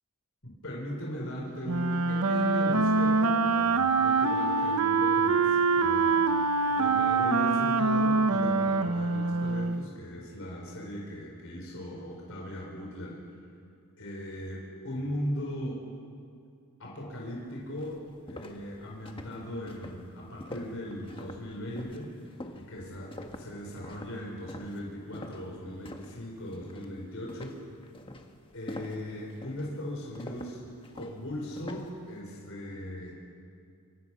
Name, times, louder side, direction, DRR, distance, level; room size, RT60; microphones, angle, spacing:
voice 1, 0.4-6.2 6.7-13.2 14.0-15.8 16.8-18.0 18.3-22.1 22.5-27.6 28.5-30.6 30.9-33.1, equal, 60° left, -2 dB, 4.7 m, -38 dB
Wind instrument woodwind instrument, 1.6-9.8, right 4 dB, 80° right, 1.1 m, -25 dB
sound 1, 17.3-17.4 17.8-26.2 26.5-26.9 27.3-32.0, left 1 dB, 25° left, 1.6 m, -45 dB
26.0 x 23.5 x 6.2 m, 2.3 s
head